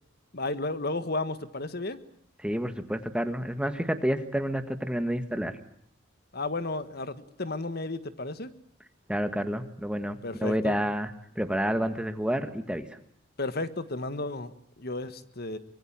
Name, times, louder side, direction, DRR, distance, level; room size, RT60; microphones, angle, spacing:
voice 1, 0.3-2.0 6.3-8.5 10.2-10.8 13.4-15.6, left 2 dB, 50° left, 12 dB, 1.5 m, -33 dB
voice 2, 2.4-5.5 9.1-11.1 11.4-12.9, equal, 5° right, 8 dB, 1.6 m, -29 dB
24.5 x 24.0 x 8.8 m, 0.66 s
head